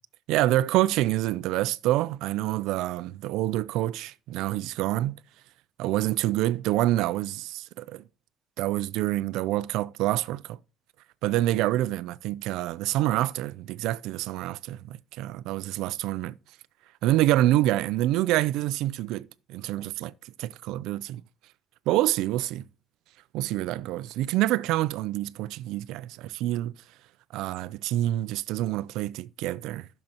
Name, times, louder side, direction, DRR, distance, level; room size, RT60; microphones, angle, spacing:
voice 1, 0.3-5.2 5.8-8.0 8.6-10.6 11.2-16.4 17.0-20.1 20.4-21.2 21.9-22.6 23.3-26.7 27.3-29.9, right 15 dB, 80° right, 0.4 m, -27 dB
14.5 x 6.6 x 2.9 m
cardioid pair, 170°, 0 cm